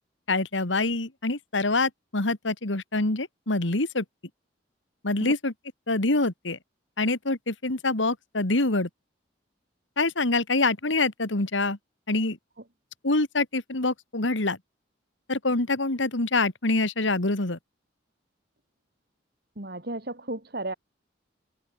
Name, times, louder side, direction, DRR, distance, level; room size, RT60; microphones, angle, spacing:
voice 1, 0.3-4.0 5.0-5.5 5.9-6.6 7.0-8.9 10.0-11.8 12.1-12.4 13.0-14.6 15.3-17.6, left 2 dB, 80° left, 2.3 m, -25 dB
voice 2, 19.6-20.7, right 2 dB, 55° right, 2.6 m, -34 dB
head